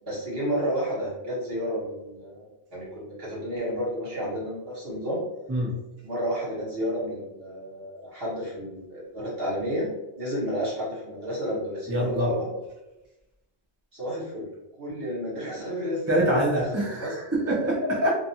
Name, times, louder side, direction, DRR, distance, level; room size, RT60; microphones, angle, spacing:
voice 1, 0.0-5.2 6.0-9.9 10.1-12.5 13.9-14.5 14.8-16.0 16.3-16.7 17.0-17.2 18.0-18.1, equal, 60° right, -6 dB, 1.3 m, -31 dB
voice 2, 11.9-12.3 16.1-18.1, right 1 dB, 15° right, -5 dB, 0.5 m, -24 dB
2.5 x 2.4 x 2.7 m, 0.97 s
omnidirectional pair, 1.1 m